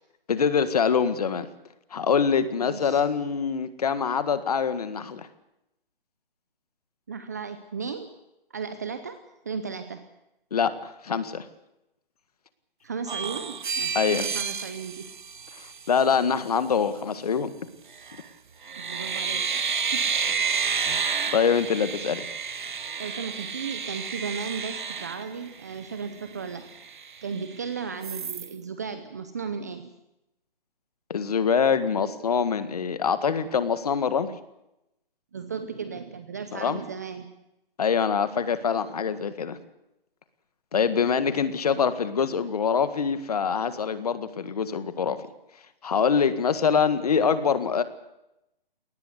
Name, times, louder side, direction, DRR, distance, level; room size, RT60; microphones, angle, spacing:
voice 1, 0.3-1.5 1.9-5.3 10.5-11.5 13.9-14.3 15.9-17.5 20.8-22.3 31.1-34.3 36.5-36.8 37.8-39.6 40.7-45.2 45.8-47.8, left 6 dB, 40° left, 12 dB, 1.9 m, -24 dB
voice 2, 2.6-3.0 7.1-8.1 8.5-10.0 12.8-15.1 18.8-19.6 19.9-20.0 23.0-26.7 27.2-29.9 35.3-37.3, right 5 dB, 20° right, 10 dB, 0.8 m, -35 dB
sound 1, 13.1-16.1 17.9-18.3 18.6-25.9 26.3-26.4 26.7-27.6 28.0-28.5, right 6 dB, 55° right, 1.6 m, -30 dB
21.5 x 19.0 x 8.2 m, 0.88 s
hypercardioid pair, 175°, 29 cm